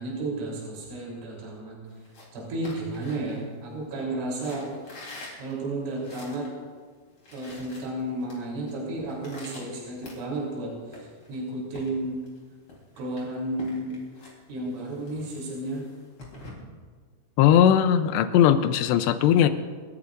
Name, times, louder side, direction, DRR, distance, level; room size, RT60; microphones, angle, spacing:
voice 1, 0.0-1.8 2.3-4.7 5.4-6.5 7.3-12.2 13.0-14.0 14.5-15.9, right 2 dB, 75° right, -3 dB, 6.1 m, -32 dB
sound 1, 1.9-3.9 4.3-6.5 6.9-7.0 7.1-8.4 8.7-10.6 10.9-12.4 12.7-16.5, left 2 dB, 30° left, 4.0 m, -46 dB
voice 2, 17.4-19.5, left 9 dB, 80° left, 10 dB, 2.7 m, -19 dB
29.5 x 14.0 x 2.6 m, 1.6 s
omnidirectional pair, 5.5 m